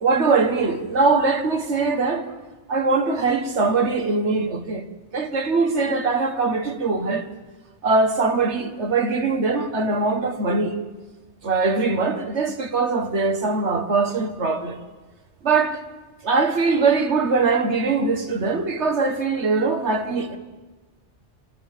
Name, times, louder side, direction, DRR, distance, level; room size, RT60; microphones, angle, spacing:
voice 1, 0.0-2.3 2.7-4.9 5.1-7.3 7.8-10.8 11.4-14.8 15.4-15.8 16.2-20.4, right 4 dB, 80° right, 1.9 m, -22 dB
26.5 x 21.0 x 7.4 m
omnidirectional pair, 1.1 m